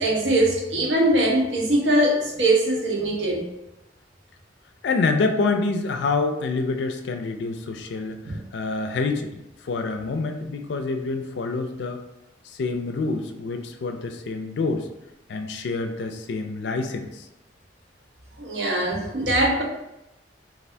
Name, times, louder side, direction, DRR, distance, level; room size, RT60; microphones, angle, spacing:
voice 1, 0.0-3.4 8.2-8.4 18.4-19.6, right 1 dB, 75° right, -2 dB, 0.8 m, -21 dB
voice 2, 4.8-12.0 12.4-14.9 15.3-17.3, left 3 dB, 70° left, 6 dB, 0.4 m, -27 dB
3.3 x 2.4 x 2.6 m, 0.92 s
head